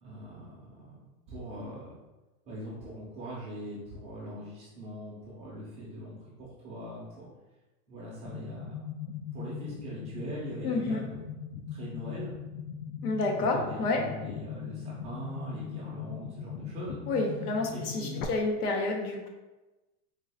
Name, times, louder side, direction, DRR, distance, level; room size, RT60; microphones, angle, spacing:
voice 1, 0.0-1.0 1.3-2.0 2.5-7.3 7.9-8.9 9.3-11.2 11.7-12.3 13.3-17.0 17.7-18.5, right 1 dB, 15° right, -6 dB, 0.5 m, -42 dB
sound 1, 8.3-18.3, left 7 dB, 65° left, 0.5 m, -40 dB
voice 2, 10.6-11.0 13.0-14.0 17.1-19.3, left 3 dB, 80° left, 2 dB, 1.0 m, -29 dB
4.1 x 2.4 x 3.4 m, 1.1 s
supercardioid pair, 155°, 45 cm